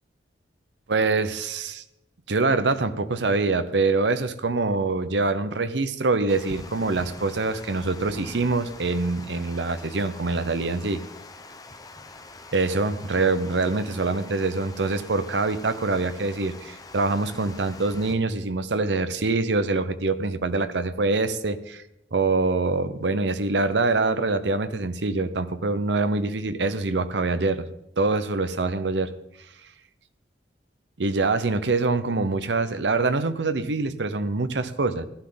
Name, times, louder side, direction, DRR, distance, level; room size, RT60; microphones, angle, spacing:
voice 1, 0.9-1.8 2.3-11.0 12.5-21.8 22.1-27.7 28.0-29.1 31.0-35.1, right 3 dB, 80° right, 12 dB, 0.8 m, -24 dB
Water, 6.3-18.1, left 3 dB, 20° left, 0.8 m, -44 dB
15.5 x 11.5 x 3.9 m, 0.83 s
head